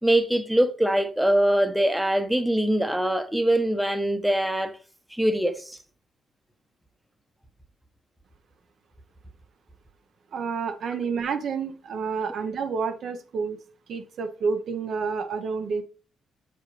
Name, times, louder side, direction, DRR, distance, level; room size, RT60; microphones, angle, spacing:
voice 1, 0.0-4.7 5.1-5.8 10.9-11.1, right 1 dB, 5° right, 0.9 m, -23 dB
voice 2, 10.3-13.6 13.9-15.8, right 5 dB, 60° right, 0.7 m, -29 dB
7.4 x 5.0 x 3.1 m
cardioid pair, 90°, 0 cm